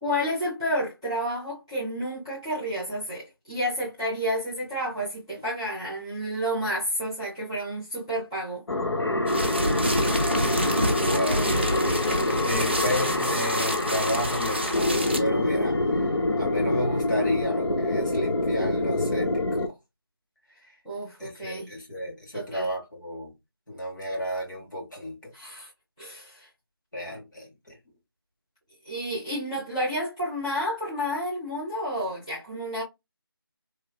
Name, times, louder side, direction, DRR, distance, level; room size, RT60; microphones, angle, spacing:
voice 1, 0.0-8.6 20.8-21.7 22.3-22.7 25.3-25.7 26.0-26.5 28.8-32.8, equal, 10° left, 1.0 m, -30 dB
sound 1, 8.7-19.7, left 2 dB, 85° left, 0.7 m, -26 dB
sound 2, 9.3-15.2, right 1 dB, 25° right, 0.5 m, -29 dB
voice 2, 10.6-11.8 12.3-16.1 16.4-19.7 20.7-20.8 21.2-23.3 23.7-25.3 26.9-27.8, left 1 dB, 50° left, 1.8 m, -32 dB
3.1 x 2.7 x 2.3 m
figure-of-eight pair, 175°, 13 cm